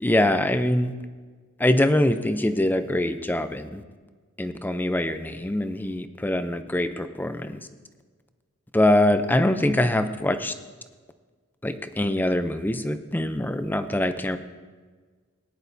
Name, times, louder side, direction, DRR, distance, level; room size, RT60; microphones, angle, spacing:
voice 1, 0.0-0.9 1.6-3.8 4.4-7.6 8.7-10.5 11.6-14.4, left 1 dB, 10° left, 10 dB, 0.5 m, -23 dB
18.0 x 10.5 x 2.7 m, 1.5 s
head